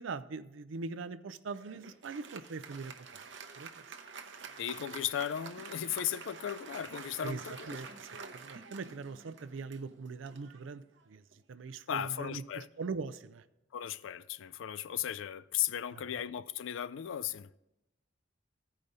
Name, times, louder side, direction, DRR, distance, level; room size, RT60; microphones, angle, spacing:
voice 1, 0.0-2.9 3.6-3.7 7.2-7.4 7.7-11.2 11.5-13.4 15.9-16.0, right 4 dB, 85° right, 0.5 m, -41 dB
Applause, 1.5-11.3, right 5 dB, 65° right, 0.8 m, -48 dB
voice 2, 4.6-7.8 11.9-12.7 13.7-17.5, left 10 dB, 80° left, 0.4 m, -36 dB
15.0 x 5.0 x 4.0 m
head